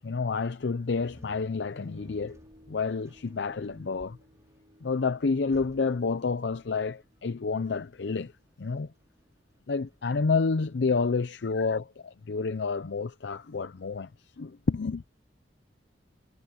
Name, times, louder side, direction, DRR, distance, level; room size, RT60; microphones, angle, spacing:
voice 1, 0.0-2.4 2.7-4.2 4.8-8.3 8.6-8.9 9.7-15.0, left 4 dB, 70° left, 0.6 m, -29 dB
sound 1, 0.8-11.9, equal, 20° right, 3.2 m, -59 dB
sound 2, 1.3-9.7 10.2-10.3, equal, 45° right, 2.8 m, -60 dB
head